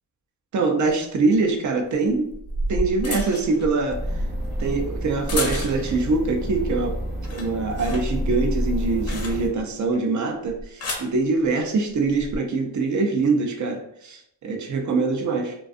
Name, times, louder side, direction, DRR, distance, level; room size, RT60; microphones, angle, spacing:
voice 1, 0.5-2.3 2.7-4.0 4.6-7.0 7.3-15.6, right 3 dB, 40° right, 4 dB, 0.5 m, -23 dB
sound 1, 0.9-1.0 2.1-6.1 6.5-6.9 7.1-9.7 10.5-11.2 12.1-12.4, equal, 35° left, 0.5 m, -31 dB
sound 2, 3.9-9.5, equal, 20° right, 0.8 m, -29 dB
2.5 x 2.3 x 2.4 m, 0.75 s
cardioid pair, 115°, 46 cm